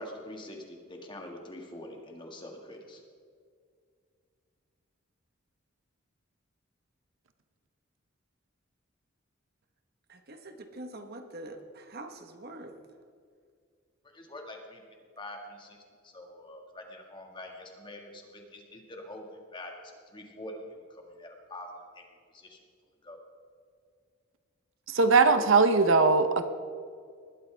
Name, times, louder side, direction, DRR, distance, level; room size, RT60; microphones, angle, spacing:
voice 1, 0.0-3.0 14.1-14.8 15.2-15.8 16.0-22.0 22.3-22.6 23.0-23.2, left 1 dB, 25° left, 2 dB, 1.7 m, -45 dB
voice 2, 10.1-12.8, right 1 dB, 50° right, 6 dB, 1.2 m, -44 dB
voice 3, 24.9-26.4, right 4 dB, 70° right, 9 dB, 0.8 m, -21 dB
20.0 x 12.5 x 3.4 m, 2.2 s
head